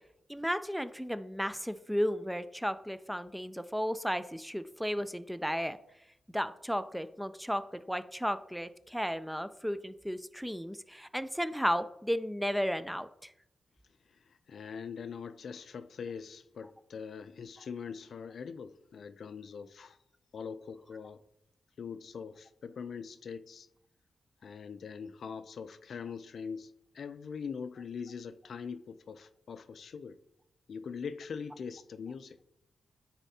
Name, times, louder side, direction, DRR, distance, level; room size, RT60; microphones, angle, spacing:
voice 1, 0.3-5.8 6.3-13.3, equal, ahead, 0.3 m, -34 dB
voice 2, 14.1-20.0 20.3-21.2 21.8-23.7 24.4-30.2 30.7-32.4, left 6 dB, 75° left, 0.4 m, -42 dB
9.2 x 4.1 x 2.8 m
cardioid pair, 85°, 0 cm